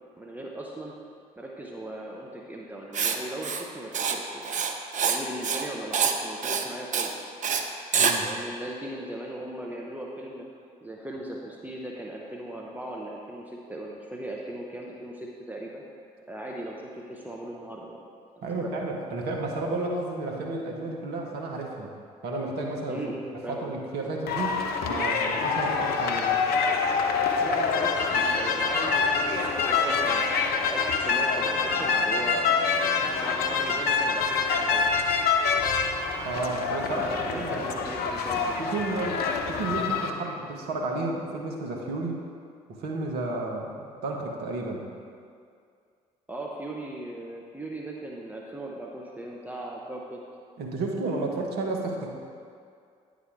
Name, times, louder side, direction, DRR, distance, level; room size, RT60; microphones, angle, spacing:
voice 1, 0.2-0.9 1.4-4.5 5.0-7.3 8.2-10.5 10.8-15.8 16.3-18.0 18.4-18.7 22.9-23.7 27.4-32.8 33.2-34.9 36.9-38.6 40.2-40.3 46.3-50.2, right 1 dB, 10° right, -2 dB, 0.9 m, -38 dB
Writing, 2.9-3.2 3.4-3.6 3.9-4.2 4.4-5.2 5.4-5.7 5.9-6.2 6.4-6.6 6.9-7.1 7.4-7.6 7.9-8.1, right 6 dB, 40° right, 0.6 m, -25 dB
voice 2, 7.9-8.3 18.4-21.9 22.2-23.0 23.5-26.3 36.2-37.7 38.6-42.2 42.7-44.9 50.6-52.1, right 2 dB, 60° right, 0 dB, 1.1 m, -32 dB
sound 1, 24.3-40.1, left 5 dB, 55° left, 0.7 m, -26 dB
9.6 x 4.0 x 4.8 m, 2.3 s
figure-of-eight pair, 50°, 19 cm